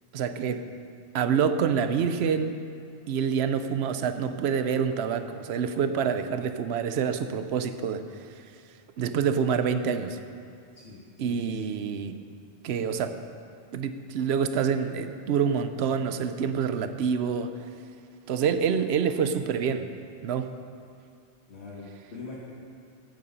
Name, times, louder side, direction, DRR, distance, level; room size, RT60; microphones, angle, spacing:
voice 1, 0.1-0.6 1.1-2.6 3.1-8.4 9.0-10.2 11.2-12.2 12.6-13.2 13.7-17.5 18.3-19.9 20.2-20.5, right 7 dB, 70° right, 9 dB, 0.9 m, -27 dB
voice 2, 10.7-11.7 21.5-22.4, left 3 dB, 70° left, -7 dB, 2.0 m, -43 dB
15.0 x 8.6 x 5.4 m, 2.3 s
omnidirectional pair, 1.2 m